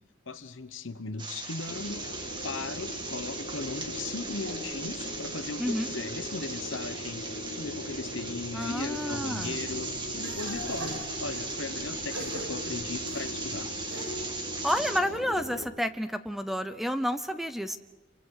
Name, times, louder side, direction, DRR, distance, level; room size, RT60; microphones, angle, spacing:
voice 1, 0.3-2.0 2.4-13.7, left 3 dB, 65° left, 11 dB, 1.2 m, -38 dB
sound 1, 1.2-15.0, right 3 dB, 20° right, 2.0 m, -38 dB
sound 2, 1.7-15.7, left 1 dB, 40° left, 4.8 m, -40 dB
sound 3, 3.9-6.1 6.5-7.1 7.7-8.7 9.1-14.3, equal, 80° right, 7.4 m, -45 dB
voice 2, 8.5-9.6 14.6-17.8, equal, ahead, 10 dB, 0.7 m, -30 dB
28.5 x 24.5 x 4.9 m, 1.1 s
head